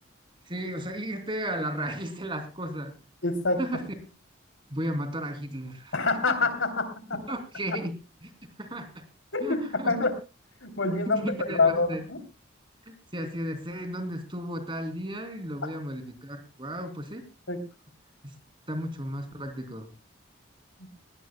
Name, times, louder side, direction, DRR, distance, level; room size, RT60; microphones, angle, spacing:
voice 1, 0.4-2.9 3.6-3.8 4.7-5.9 6.3-6.4 7.1-7.9 8.2-8.3 8.6-9.0 9.4-10.0 11.1-12.0 12.9-17.2 18.7-19.9, right 1 dB, 25° right, 7 dB, 2.9 m, -34 dB
voice 2, 3.2-3.6 5.9-7.2 9.3-9.6 9.9-10.1 10.6-12.2 17.5-17.6, left 3 dB, 70° left, 8 dB, 3.2 m, -26 dB
21.0 x 18.0 x 2.2 m, 0.29 s
head